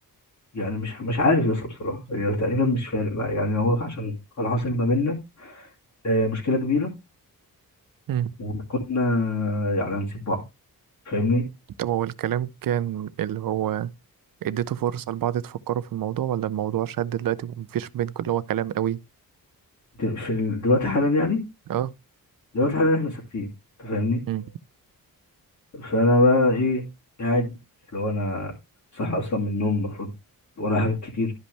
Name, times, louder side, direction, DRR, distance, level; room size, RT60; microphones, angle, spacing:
voice 1, 0.5-5.7 6.0-6.9 8.4-10.4 11.1-11.5 20.0-21.5 22.5-23.5 23.8-24.2 25.7-26.9 27.2-27.6 27.9-28.5 28.9-30.1 30.6-31.3, left 2 dB, 50° left, 2.7 m, -24 dB
voice 2, 11.8-13.9 14.4-19.0 21.7-21.9 24.3-24.4, right 11 dB, 65° right, 0.6 m, -27 dB
11.5 x 5.3 x 3.4 m
wide cardioid pair, 145°, 36 cm